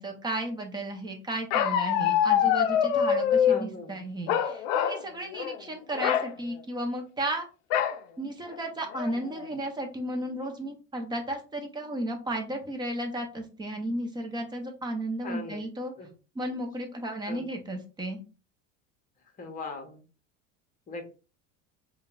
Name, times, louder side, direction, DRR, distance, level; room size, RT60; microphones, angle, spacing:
voice 1, 0.0-7.5 8.2-15.9 16.3-18.2, right 1 dB, 10° right, 3 dB, 0.8 m, -34 dB
Bark, 1.5-3.6 4.3-5.0 5.3-5.6 5.9-6.3 7.7-8.0 8.5-8.6 8.9-9.4, left 9 dB, 65° left, 0.5 m, -24 dB
voice 2, 3.5-4.0 15.2-15.6 16.0-16.1 17.2-17.4 19.4-20.0 20.9-21.1, left 3 dB, 25° left, 4 dB, 1.0 m, -39 dB
5.1 x 2.3 x 2.5 m, 0.34 s
supercardioid pair, 130°, 35 cm